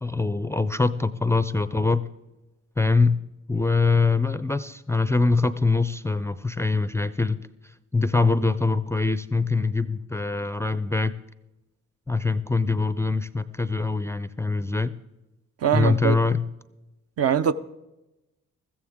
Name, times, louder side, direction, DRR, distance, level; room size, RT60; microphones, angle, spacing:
voice 1, 0.0-2.1 2.8-3.2 3.5-7.4 7.9-11.1 12.1-14.9 15.7-16.5, left 3 dB, 10° left, 0.4 m, -23 dB
voice 2, 15.6-16.2 17.2-17.5, right 8 dB, 50° right, 0.6 m, -22 dB
14.5 x 14.5 x 3.6 m
cardioid pair, 90°, 30 cm